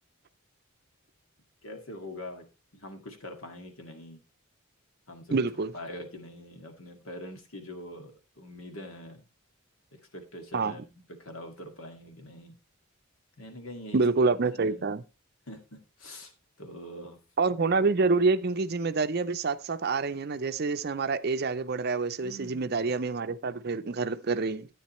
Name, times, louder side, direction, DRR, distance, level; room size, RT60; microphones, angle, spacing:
voice 1, 1.6-2.4 2.7-4.2 5.1-5.5 5.7-9.3 9.9-12.5 13.4-14.0 14.3-14.9 15.5-16.3 16.6-17.2 22.2-22.7, left 1 dB, 75° left, 2.0 m, -44 dB
voice 2, 5.3-5.7 10.5-10.7 13.9-15.0 17.4-24.7, right 4 dB, 45° right, 0.5 m, -27 dB
10.5 x 9.2 x 3.1 m
head